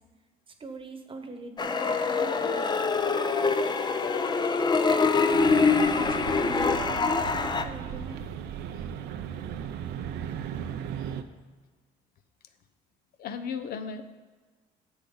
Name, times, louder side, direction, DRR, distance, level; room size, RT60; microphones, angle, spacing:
voice 1, 0.6-8.3, right 3 dB, 30° right, 6 dB, 1.1 m, -42 dB
sound 1, 1.6-7.6, left 4 dB, 25° left, 0.6 m, -24 dB
sound 2, 5.3-11.2, right 9 dB, 80° right, 0.6 m, -36 dB
voice 2, 13.2-14.0, left 6 dB, 65° left, 9 dB, 0.8 m, -35 dB
10.0 x 7.2 x 3.9 m, 1.4 s
cardioid pair, 110°, 17 cm